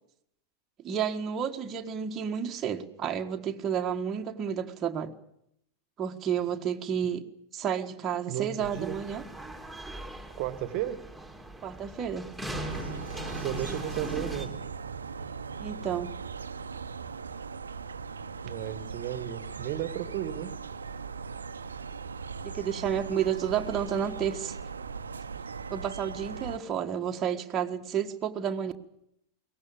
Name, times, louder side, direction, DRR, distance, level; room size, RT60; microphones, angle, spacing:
voice 1, 0.8-5.1 6.0-7.2 7.5-9.2 11.6-12.3 15.6-16.1 22.4-24.6 25.7-28.7, right 8 dB, 25° right, 1.6 m, -31 dB
voice 2, 8.3-9.0 10.4-11.0 13.4-14.7 18.4-20.5, right 12 dB, 40° right, 1.6 m, -34 dB
sound 1, 8.6-14.5, right 1 dB, ahead, 3.6 m, -40 dB
sound 2, 12.5-26.6, right 5 dB, 70° right, 1.0 m, -39 dB
22.5 x 19.0 x 8.7 m
figure-of-eight pair, 90°, 0 cm